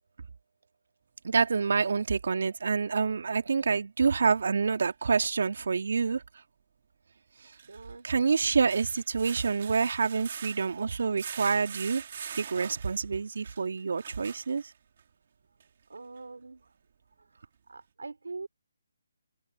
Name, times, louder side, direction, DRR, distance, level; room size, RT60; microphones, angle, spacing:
voice 1, 1.2-6.2 8.0-12.0 12.3-14.6, right 5 dB, 65° right, 2.2 m, -27 dB
sound 1, 4.9-5.0 7.4-15.0 15.6-15.7 16.2-16.3, right 8 dB, 45° right, 2.8 m, -44 dB
voice 2, 7.7-8.1 15.9-16.7 17.7-18.5, right 3 dB, 80° right, 3.2 m, -42 dB
open air
figure-of-eight pair, 155°, 0 cm